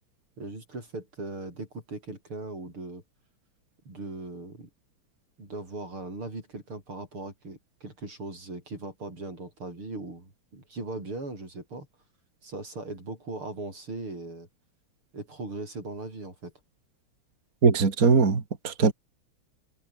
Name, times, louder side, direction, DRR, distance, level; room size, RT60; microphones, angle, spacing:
voice 1, 0.4-3.0 3.9-4.7 5.4-11.9 12.4-14.5 15.1-16.5, right 2 dB, 90° right, 8.8 m, -39 dB
voice 2, 17.6-18.9, right 5 dB, 40° right, 2.8 m, -21 dB
omnidirectional pair, 2.3 m